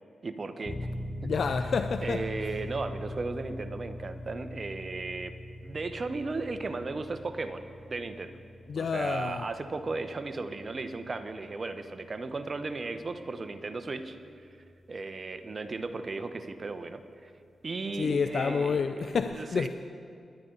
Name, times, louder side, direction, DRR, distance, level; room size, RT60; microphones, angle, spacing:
voice 1, 0.2-0.8 2.0-5.3 5.6-7.6 7.9-8.4 8.8-14.2 14.9-17.3 17.6-19.7, right 3 dB, 50° right, 9 dB, 1.0 m, -35 dB
sound 1, 0.6-15.1, left 1 dB, 30° left, 1.5 m, -42 dB
voice 2, 1.2-2.2 8.7-9.5 17.9-19.7, left 5 dB, 70° left, 8 dB, 0.5 m, -29 dB
23.5 x 10.5 x 4.0 m, 2.4 s
supercardioid pair, 45°, 0 cm